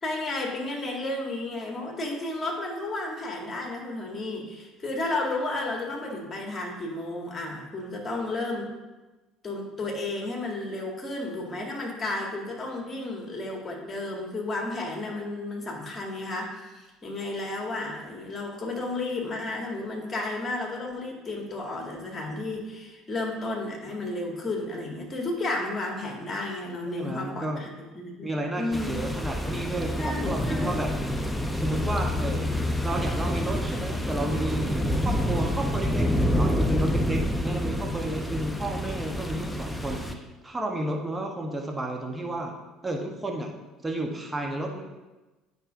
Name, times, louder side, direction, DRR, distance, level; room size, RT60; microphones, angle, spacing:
voice 1, 0.0-8.7 9.4-28.9 30.0-30.8, left 2 dB, 25° left, -1 dB, 1.8 m, -32 dB
voice 2, 27.0-27.6 28.2-30.9 31.6-32.6 32.8-42.5 42.8-43.5 43.8-44.8, right 1 dB, 20° right, 1 dB, 1.0 m, -32 dB
sound 1, 28.7-40.1, equal, 5° left, 0.7 m, -28 dB
8.8 x 5.4 x 2.5 m, 1.1 s
hypercardioid pair, 60°, 0 cm